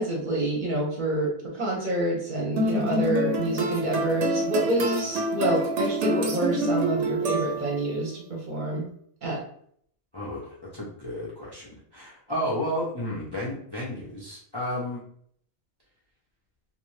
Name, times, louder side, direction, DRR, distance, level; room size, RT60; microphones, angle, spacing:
voice 1, 0.0-8.8 9.2-9.4, right 1 dB, 50° right, -2 dB, 0.8 m, -27 dB
sound 1, 2.6-7.9, right 1 dB, 75° right, 0.9 m, -27 dB
voice 2, 10.1-11.7 11.9-15.0, equal, 30° left, -5 dB, 0.4 m, -32 dB
2.6 x 2.2 x 3.1 m, 0.64 s
omnidirectional pair, 1.2 m